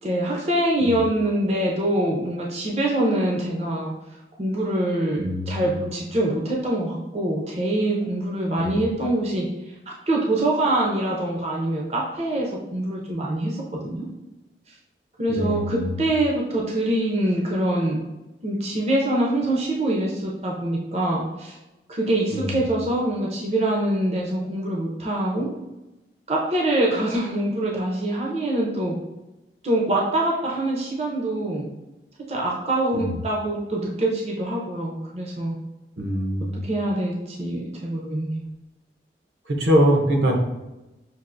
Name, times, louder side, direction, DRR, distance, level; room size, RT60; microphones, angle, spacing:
voice 1, 0.0-3.9 4.4-9.5 9.9-14.0 15.2-18.0 18.4-21.6 21.9-25.5 26.3-29.0 29.6-31.7 32.3-35.6 36.6-38.4, right 1 dB, 35° right, -2 dB, 0.6 m, -24 dB
voice 2, 5.2-5.8 8.6-8.8 15.3-16.0 22.3-22.6 32.9-33.1 36.0-36.6 39.5-40.4, equal, 75° right, 1 dB, 0.8 m, -23 dB
5.9 x 2.5 x 2.5 m, 1.0 s
head